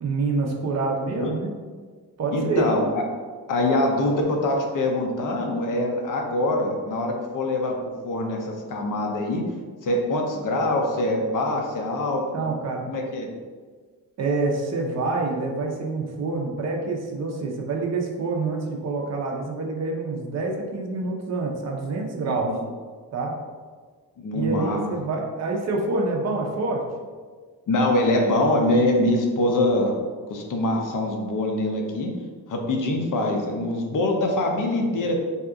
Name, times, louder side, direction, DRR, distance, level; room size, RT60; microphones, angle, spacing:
voice 1, 0.0-1.5 2.2-2.8 12.1-12.9 14.2-22.5 23.1-23.4 24.3-26.8, right 3 dB, 45° right, 1 dB, 0.5 m, -27 dB
voice 2, 2.3-3.0 3.5-7.8 8.0-9.4 9.8-12.4 12.9-13.3 22.3-22.6 24.2-24.9 27.7-30.0 30.3-32.1 32.5-35.3, left 1 dB, 55° left, 2 dB, 0.6 m, -24 dB
2.8 x 2.4 x 3.5 m, 1.5 s
wide cardioid pair, 150°, 39 cm